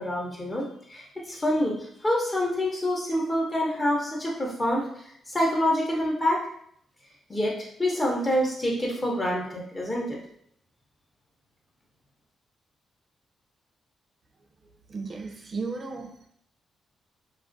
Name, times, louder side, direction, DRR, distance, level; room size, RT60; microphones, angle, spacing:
voice 1, 0.0-1.8 2.0-4.9 5.3-6.4 7.3-10.2, left 1 dB, 25° left, -2 dB, 0.6 m, -26 dB
voice 2, 14.9-16.3, right 4 dB, 45° right, 3 dB, 0.4 m, -35 dB
2.3 x 2.1 x 2.5 m, 0.66 s
cardioid pair, 65°, 0 cm